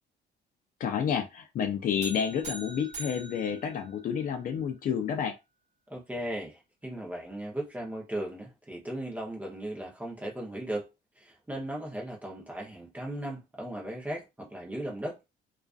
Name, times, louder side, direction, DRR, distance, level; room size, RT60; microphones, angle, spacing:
voice 1, 0.8-5.3, left 7 dB, 45° left, 0.4 m, -30 dB
sound 1, 2.0-4.5, right 3 dB, 35° right, 1.2 m, -43 dB
voice 2, 5.9-10.9 11.2-15.2, right 1 dB, 10° right, 0.7 m, -37 dB
2.4 x 2.4 x 2.3 m
cardioid pair, 155°, 20 cm